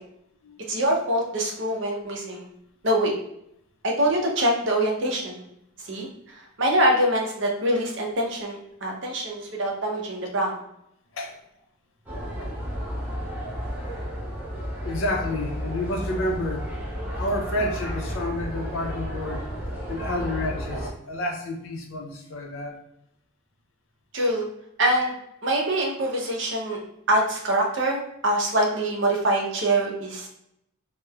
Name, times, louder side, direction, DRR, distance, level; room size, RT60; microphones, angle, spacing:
voice 1, 0.7-2.5 2.8-3.1 3.8-5.4 5.8-6.1 6.4-10.6 24.1-24.5 24.8-25.1 25.4-26.8 27.1-30.3, right 1 dB, 60° right, 0 dB, 0.6 m, -24 dB
sound 1, 12.1-20.9, equal, 5° right, 0.5 m, -32 dB
voice 2, 14.8-16.7 17.2-19.5 19.9-22.8, left 1 dB, 70° left, 2 dB, 0.5 m, -30 dB
3.0 x 2.0 x 2.3 m, 0.77 s
head